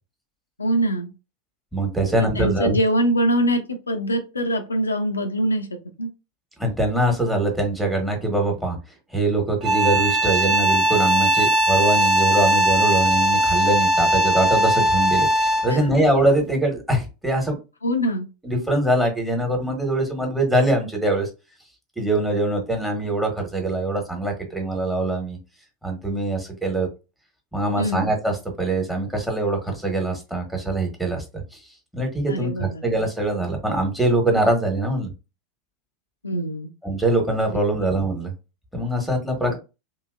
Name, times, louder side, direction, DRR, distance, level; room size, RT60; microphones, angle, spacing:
voice 1, 0.6-1.1 2.2-3.6 3.9-5.7 6.0-6.1 15.7-15.8 17.8-18.3 27.8-28.1 32.3-32.8 36.2-36.7 39.4-39.6, right 1 dB, 85° left, 6 dB, 0.5 m, -23 dB
voice 2, 1.7-2.8 6.6-8.8 9.1-17.6 18.4-21.3 22.0-25.4 25.8-26.9 27.5-31.6 31.9-35.1 36.8-38.3 38.7-39.6, right 2 dB, 5° right, 3 dB, 1.2 m, -23 dB
sound 1, 9.6-15.8, right 1 dB, 50° right, 0.9 m, -19 dB
2.9 x 2.8 x 2.4 m, 0.28 s
figure-of-eight pair, 90°, 0 cm